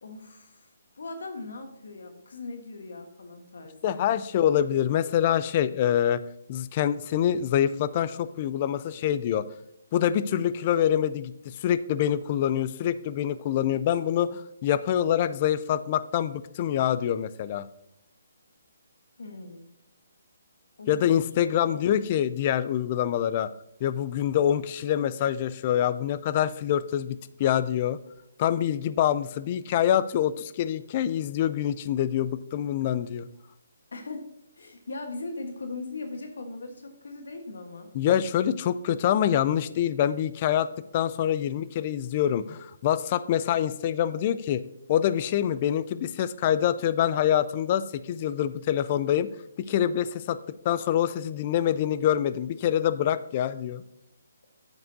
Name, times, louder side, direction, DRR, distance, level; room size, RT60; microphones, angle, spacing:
voice 1, 0.0-0.7 0.9-4.2 19.2-19.7 20.8-21.9 33.9-34.2 34.6-37.9, left 3 dB, 70° left, 5 dB, 1.4 m, -39 dB
voice 2, 3.8-6.2 6.5-9.5 9.9-17.7 20.9-23.5 23.8-28.0 28.4-33.3 37.9-44.6 44.9-49.3 49.6-50.4 50.6-53.8, left 10 dB, 30° left, 15 dB, 0.4 m, -25 dB
9.4 x 8.0 x 2.7 m, 0.83 s
hypercardioid pair, 160°, 0 cm